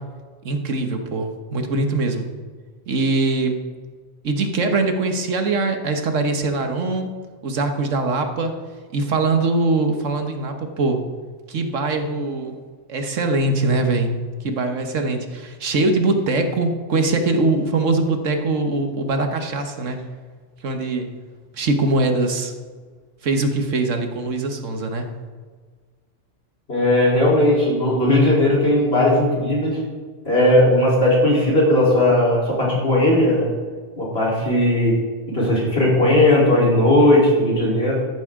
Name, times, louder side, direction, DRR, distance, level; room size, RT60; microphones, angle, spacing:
voice 1, 0.4-2.3 2.9-3.6 4.2-8.5 8.9-11.0 11.5-12.6 12.9-20.1 20.6-21.2 21.5-22.5 23.2-25.1, right 3 dB, 75° right, 5 dB, 1.5 m, -22 dB
voice 2, 26.7-29.8 30.2-33.5 34.0-35.0 35.3-37.9, left 1 dB, 50° left, -5 dB, 3.9 m, -17 dB
14.0 x 12.0 x 3.7 m, 1.5 s
omnidirectional pair, 1.3 m